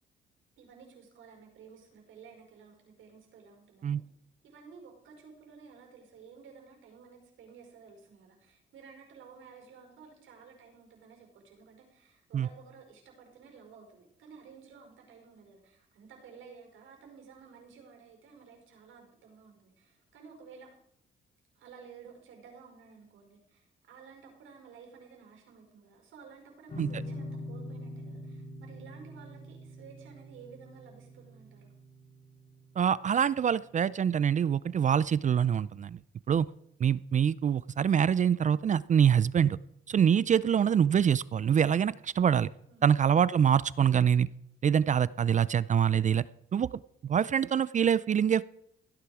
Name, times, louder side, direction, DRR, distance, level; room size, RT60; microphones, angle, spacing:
voice 1, 0.6-4.0 4.4-20.7 21.5-31.7 42.7-42.9, right 6 dB, 80° right, 2 dB, 5.1 m, -53 dB
sound 1, 26.7-33.9, left 1 dB, 40° left, 3.7 m, -44 dB
voice 2, 32.8-36.0 36.3-36.5 36.8-39.6 39.9-42.5 42.8-44.3 44.6-46.2 46.5-46.7 47.0-48.4, right 8 dB, 40° right, 19 dB, 0.4 m, -25 dB
16.5 x 10.0 x 4.8 m, 0.77 s
cardioid pair, 90°, 20 cm